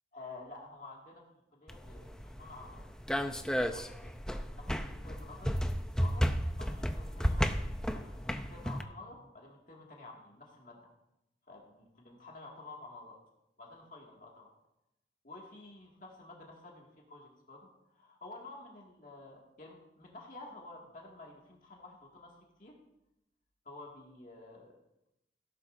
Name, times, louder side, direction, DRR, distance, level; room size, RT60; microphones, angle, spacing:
voice 1, 0.1-1.2 1.5-2.8 3.2-5.6 6.0-6.3 6.5-7.6 7.9-10.8 11.5-13.2 13.6-14.5 15.2-22.7 23.6-24.7, left 2 dB, 45° left, -2 dB, 2.2 m, -51 dB
sound 1, 1.7-8.8, equal, 5° left, 0.6 m, -33 dB
17.0 x 12.0 x 2.7 m, 0.86 s
head